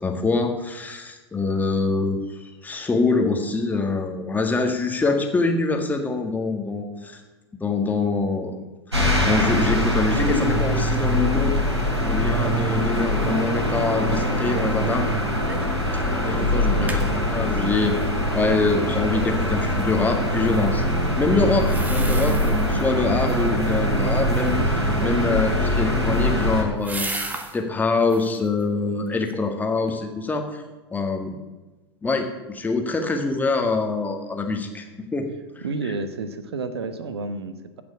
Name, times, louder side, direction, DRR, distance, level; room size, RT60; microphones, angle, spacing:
voice 1, 0.0-2.2 2.6-7.2 7.5-8.5 8.9-11.6 12.1-15.1 16.1-18.0 18.3-20.8 21.2-30.6 30.9-31.3 32.0-35.3 35.6-35.9, left 3 dB, 10° left, 4 dB, 1.8 m, -25 dB
sound 1, 8.9-26.6, equal, 90° right, 2.7 m, -23 dB
sound 2, 15.5-15.8 16.1-16.2 16.6-17.1 21.6-22.8 23.1-23.7 25.6-27.6 28.0-28.4 28.9-29.5 29.9-30.0, right 2 dB, 10° right, 1.4 m, -35 dB
voice 2, 16.3-17.0 35.6-37.8, right 4 dB, 70° right, 11 dB, 1.1 m, -31 dB
16.0 x 6.2 x 7.1 m, 1.2 s
figure-of-eight pair, 95°, 14 cm